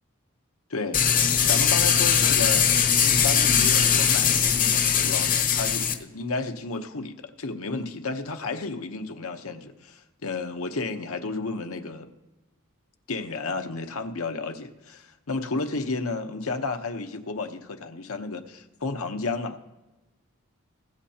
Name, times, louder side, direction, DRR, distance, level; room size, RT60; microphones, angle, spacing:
voice 1, 0.7-1.0 1.4-2.7 3.0-12.1 13.1-19.6, left 3 dB, 80° left, 6 dB, 1.0 m, -32 dB
sound 1, 0.9-5.9, left 7 dB, 40° left, 0.8 m, -21 dB
21.0 x 7.4 x 2.9 m, 1.1 s
head